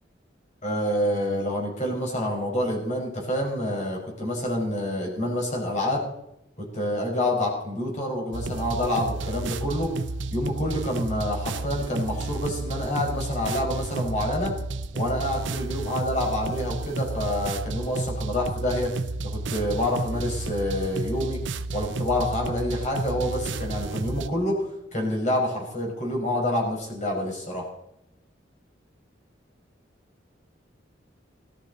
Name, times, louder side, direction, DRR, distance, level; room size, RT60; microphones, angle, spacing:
voice 1, 0.6-6.1 6.7-9.9 10.3-14.5 14.9-18.9 19.2-21.4 21.7-27.7, left 1 dB, 40° left, -1 dB, 5.2 m, -27 dB
sound 1, 8.3-24.3, right 3 dB, 90° right, 0.7 m, -32 dB
17.5 x 12.5 x 4.1 m, 0.85 s
head